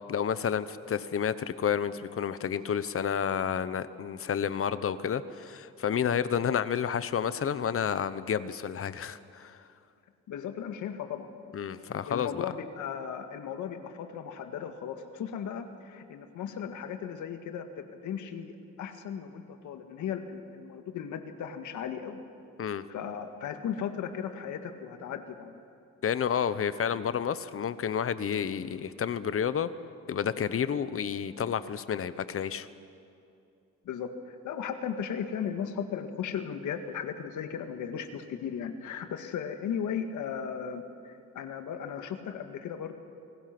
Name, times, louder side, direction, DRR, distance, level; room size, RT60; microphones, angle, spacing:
voice 1, 0.1-9.6 11.5-12.5 22.6-22.8 26.0-29.7 30.1-32.7, left 8 dB, 45° left, 14 dB, 1.0 m, -30 dB
voice 2, 10.3-11.3 12.1-22.2 22.9-25.6 33.9-42.9, left 8 dB, 80° left, 7 dB, 1.9 m, -36 dB
29.0 x 19.5 x 6.1 m, 2.6 s
cardioid pair, 90°, 30 cm